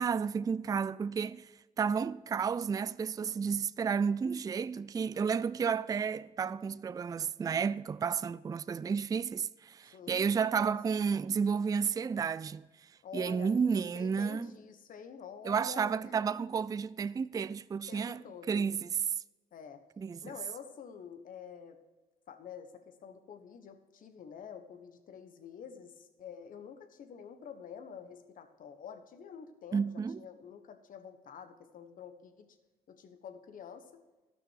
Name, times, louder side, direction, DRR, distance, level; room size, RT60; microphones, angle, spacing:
voice 1, 0.0-1.5 1.8-12.6 13.1-14.5 15.4-18.2 18.5-18.9 20.0-20.2 29.7-30.2, right 6 dB, 25° right, 0.3 m, -31 dB
voice 2, 9.8-10.6 13.0-16.1 17.9-18.7 19.5-19.8 20.2-21.8 22.3-32.6 32.9-34.0, left 7 dB, 60° left, 1.3 m, -48 dB
12.0 x 6.1 x 6.5 m
supercardioid pair, 65°, 16 cm